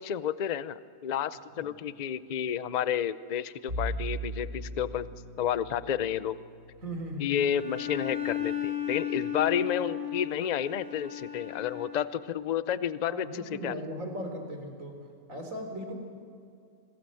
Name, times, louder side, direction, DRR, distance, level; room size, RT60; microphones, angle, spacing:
voice 1, 0.0-5.1 5.4-6.4 7.2-13.7, left 9 dB, 50° left, 15 dB, 0.5 m, -31 dB
Bowed string instrument, 3.7-8.8, right 1 dB, 80° right, 7.6 m, -40 dB
voice 2, 6.8-7.3 9.4-9.5 13.1-15.0 15.3-15.9, equal, 65° right, 4 dB, 4.1 m, -38 dB
Bowed string instrument 2, 7.5-12.2, left 10 dB, 25° left, 4.6 m, -35 dB
27.0 x 20.0 x 7.8 m, 2.4 s
omnidirectional pair, 1.5 m